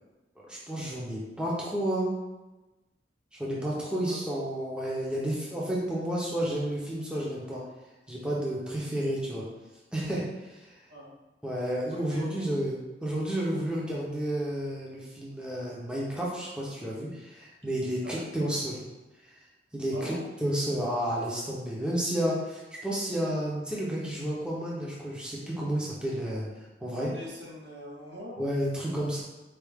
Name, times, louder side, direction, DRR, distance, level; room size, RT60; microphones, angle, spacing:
voice 1, 0.5-2.1 3.4-7.6 8.1-9.5 9.9-10.6 11.4-18.8 19.7-26.5 26.8-27.1 28.4-29.2, right 1 dB, 5° right, -6 dB, 0.7 m, -31 dB
voice 2, 11.9-12.3 18.0-18.5 19.9-20.2 27.1-28.4, equal, 85° right, -6 dB, 1.4 m, -43 dB
4.7 x 2.4 x 3.5 m, 1.1 s
head